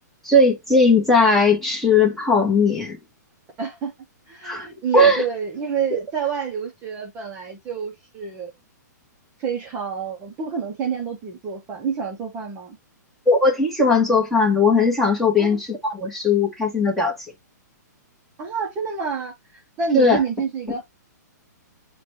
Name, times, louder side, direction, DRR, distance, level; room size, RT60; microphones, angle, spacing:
voice 1, 0.2-3.0 4.4-4.7 4.9-5.2 13.3-17.1 19.9-20.2, left 3 dB, 5° left, 1.1 m, -18 dB
voice 2, 3.6-3.9 4.3-8.5 9.4-12.8 15.4-15.6 18.4-20.9, right 6 dB, 20° right, 0.7 m, -28 dB
5.8 x 2.2 x 3.0 m
hypercardioid pair, 155°, 10 cm